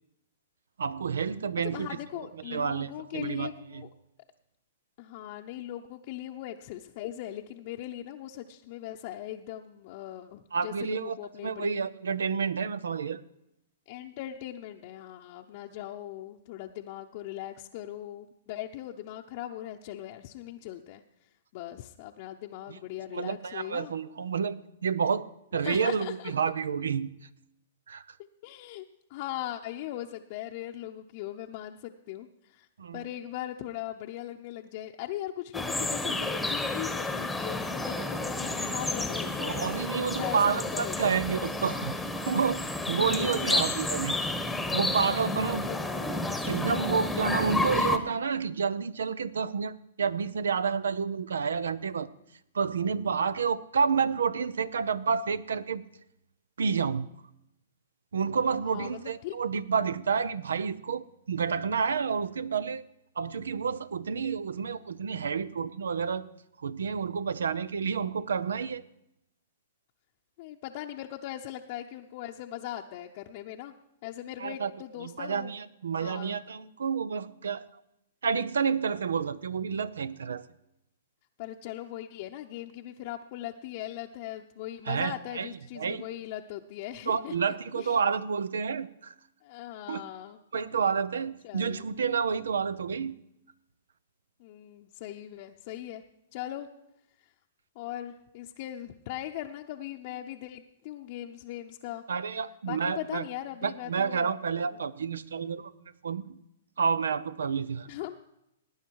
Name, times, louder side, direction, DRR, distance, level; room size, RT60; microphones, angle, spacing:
voice 1, 0.8-3.9 10.5-11.2 11.4-13.2 22.7-22.8 23.1-25.3 25.5-27.1 27.9-28.2 32.8-33.1 39.4-41.9 42.3-44.2 44.7-45.7 46.5-52.1 52.5-55.8 56.6-57.1 58.1-62.8 63.2-66.3 66.6-68.8 74.4-74.7 75.0-77.7 78.2-80.4 84.9-85.5 85.8-86.0 87.1-89.1 89.9-90.0 90.5-93.1 102.1-103.3 103.6-106.4 106.8-107.9, right 6 dB, 85° right, 19 dB, 0.6 m, -29 dB
voice 2, 1.6-3.9 5.0-11.8 13.9-21.0 21.5-23.9 25.6-26.3 28.4-28.8 29.1-32.7 32.9-39.6 40.0-41.2 43.0-43.6 45.4-45.8 58.6-59.4 70.4-73.7 74.0-75.5 76.0-76.4 81.4-87.3 87.7-88.0 89.4-90.4 91.4-91.8 94.4-96.0 96.3-96.7 97.8-102.0 102.7-104.3 107.9-108.2, left 13 dB, 50° left, 1 dB, 0.7 m, -39 dB
sound 1, 35.5-48.0, left 2 dB, 5° left, 1.1 m, -31 dB
18.0 x 9.6 x 4.7 m, 0.84 s
hypercardioid pair, 130°, 0 cm